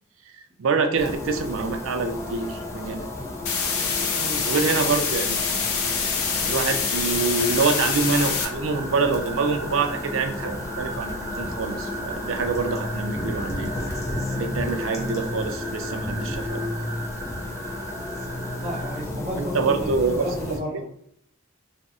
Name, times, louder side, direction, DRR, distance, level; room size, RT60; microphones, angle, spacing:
voice 1, 0.3-3.1 4.5-5.4 5.7-5.9 6.3-13.7 14.3-16.8 19.3-20.3, right 4 dB, 65° right, 5 dB, 0.4 m, -26 dB
sound 1, 1.0-20.6, left 2 dB, 15° left, 0.4 m, -33 dB
sound 2, 3.5-8.5, left 5 dB, 75° left, 0.5 m, -25 dB
voice 2, 4.1-4.8 18.6-20.8, equal, 30° right, -4 dB, 0.9 m, -33 dB
sound 3, 7.4-19.0, right 2 dB, 80° right, 0.8 m, -38 dB
2.6 x 2.0 x 3.5 m, 0.67 s
head